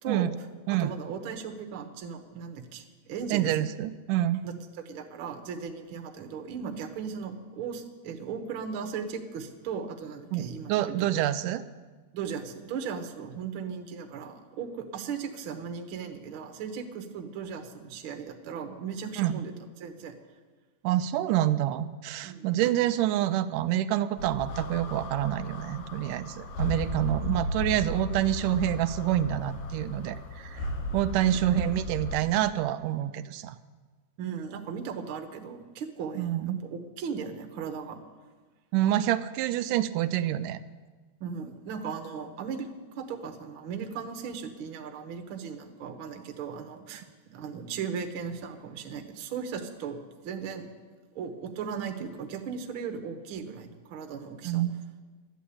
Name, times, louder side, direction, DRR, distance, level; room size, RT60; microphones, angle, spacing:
voice 1, 0.7-3.7 4.4-4.5 4.8-11.1 12.1-19.5 19.8-20.1 22.2-22.7 34.2-38.0 41.2-50.7 51.1-54.6, right 6 dB, 55° right, 5 dB, 1.5 m, -37 dB
voice 2, 3.3-4.4 10.3-10.4 10.7-11.6 19.2-19.4 20.8-30.7 30.9-33.6 36.2-36.6 38.7-40.6 54.4-54.8, right 13 dB, 85° right, 11 dB, 2.1 m, -27 dB
sound 1, 24.2-32.2, left 1 dB, 65° left, 2.5 m, -35 dB
12.5 x 10.0 x 8.6 m, 1.4 s
omnidirectional pair, 3.7 m